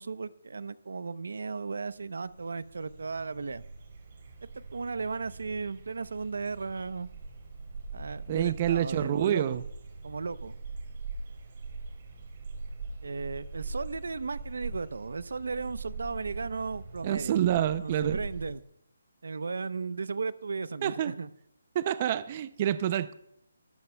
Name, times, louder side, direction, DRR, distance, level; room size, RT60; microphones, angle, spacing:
voice 1, 0.0-3.6 4.5-7.1 7.9-9.6 10.0-10.6 13.0-17.4 17.8-18.6 19.2-21.3, right 4 dB, 75° right, 15 dB, 0.8 m, -35 dB
sound 1, 2.0-18.5, right 3 dB, 45° right, 4.2 m, -42 dB
voice 2, 8.3-9.6 17.0-18.2 20.8-21.1 21.7-23.1, right 11 dB, 30° right, 14 dB, 0.5 m, -27 dB
23.0 x 14.5 x 2.3 m, 0.75 s
hypercardioid pair, 165°, 0 cm